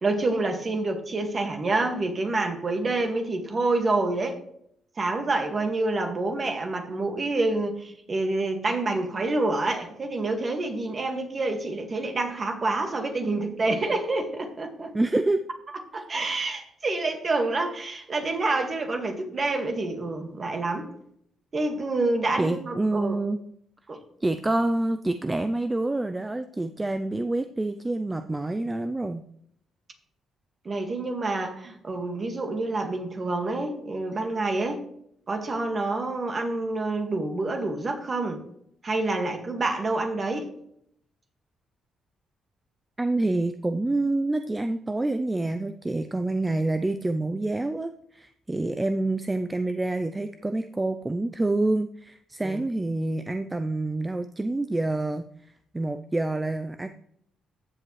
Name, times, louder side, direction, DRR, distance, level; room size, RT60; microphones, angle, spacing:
voice 1, 0.0-4.4 5.0-14.9 15.9-20.9 21.5-23.2 23.9-24.0 30.7-34.8 35.3-38.4 38.8-40.5 52.4-52.6, right 2 dB, 35° right, 4 dB, 1.9 m, -27 dB
voice 2, 14.9-15.4 22.4-23.4 24.2-29.2 43.0-55.3 55.7-56.9, right 2 dB, 15° right, 8 dB, 0.5 m, -27 dB
15.0 x 7.5 x 3.2 m, 0.71 s
cardioid pair, 90°, 0 cm